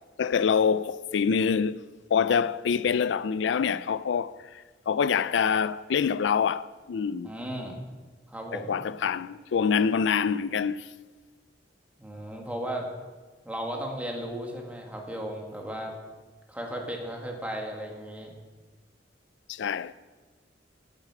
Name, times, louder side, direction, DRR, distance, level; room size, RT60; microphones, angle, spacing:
voice 1, 0.2-1.8 2.1-7.3 8.5-10.9 19.5-19.9, left 6 dB, 80° left, 0.4 m, -26 dB
voice 2, 7.2-7.8 8.3-8.8 12.0-12.9 13.4-15.9 16.5-18.3, right 1 dB, 10° right, 1.6 m, -35 dB
8.9 x 7.4 x 7.5 m
head